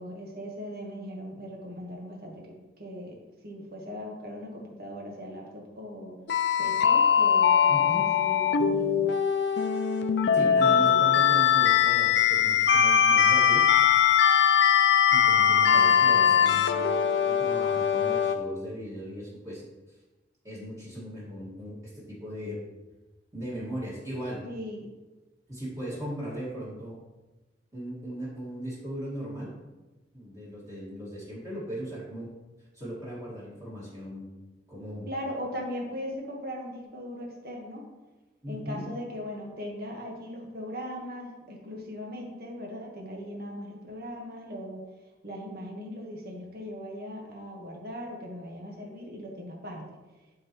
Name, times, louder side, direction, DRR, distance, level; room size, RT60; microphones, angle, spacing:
voice 1, 0.0-6.2 6.6-9.2 10.2-11.2 15.7-16.6 24.4-24.9 35.0-37.8 38.5-44.9 45.2-50.0, equal, 55° right, -1 dB, 1.5 m, -39 dB
sound 1, 6.3-18.4, left 8 dB, 70° left, 0.5 m, -21 dB
voice 2, 7.7-8.0 10.3-13.6 15.1-16.9 17.2-19.6 20.4-22.6 23.3-24.4 25.5-26.9 27.7-29.5 30.1-32.3 32.7-34.3 34.7-35.1 38.4-38.8, equal, 20° right, -8 dB, 1.9 m, -38 dB
11.5 x 4.0 x 3.1 m, 1.1 s
head